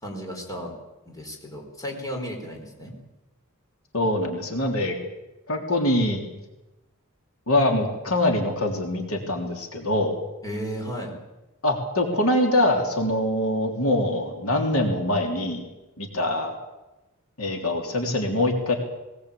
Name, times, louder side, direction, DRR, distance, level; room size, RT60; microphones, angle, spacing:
voice 1, 0.0-0.7 1.1-2.9 10.4-11.1, equal, 15° left, 1 dB, 4.4 m, -34 dB
voice 2, 3.9-4.9 5.5-6.2 7.5-10.2 11.6-15.6 16.0-16.5 17.4-18.7, left 1 dB, 70° left, 2 dB, 3.4 m, -24 dB
20.0 x 19.0 x 8.5 m, 1.0 s
head